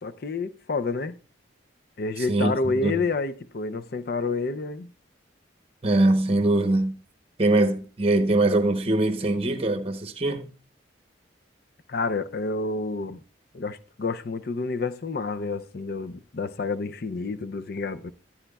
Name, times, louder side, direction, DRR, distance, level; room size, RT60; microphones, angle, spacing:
voice 1, 0.0-1.2 2.0-4.9 11.9-13.2 13.5-18.1, left 3 dB, 50° left, 0.5 m, -29 dB
voice 2, 2.3-3.0 5.8-7.0 7.4-10.5, right 2 dB, 30° right, 0.8 m, -22 dB
14.0 x 9.9 x 2.3 m
head